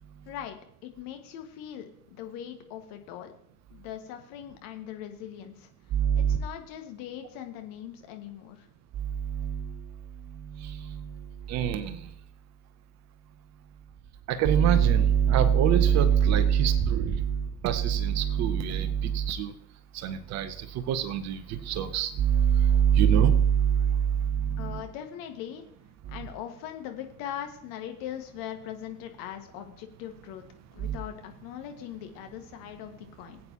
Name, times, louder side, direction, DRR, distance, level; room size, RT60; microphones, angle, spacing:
voice 1, 0.3-3.3 3.7-5.7 6.2-8.7 24.6-25.6 26.1-30.4 30.7-33.4, left 10 dB, 45° left, 5 dB, 1.7 m, -40 dB
voice 2, 5.9-6.4 9.0-9.8 10.3-11.1 11.5-12.1 14.3-19.5 19.9-24.8 26.1-26.2 30.8-31.0, right 8 dB, 35° right, 12 dB, 0.9 m, -24 dB
20.0 x 8.5 x 2.9 m, 0.71 s
figure-of-eight pair, 75°, 45 cm